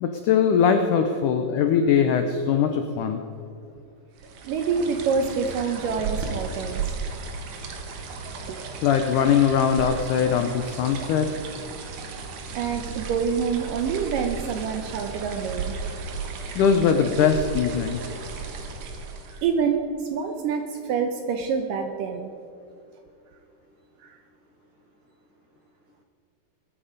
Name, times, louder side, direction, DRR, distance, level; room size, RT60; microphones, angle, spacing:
voice 1, 0.0-3.2 8.8-11.3 16.6-18.0, left 7 dB, 90° left, 6 dB, 1.8 m, -21 dB
sound 1, 4.2-19.6, right 5 dB, 60° right, 2.3 m, -35 dB
voice 2, 4.4-6.8 8.5-8.6 11.4-11.5 12.6-15.8 16.1-16.2 19.4-22.3, right 6 dB, 75° right, 5 dB, 2.1 m, -27 dB
21.0 x 10.0 x 5.1 m, 2.5 s
omnidirectional pair, 4.7 m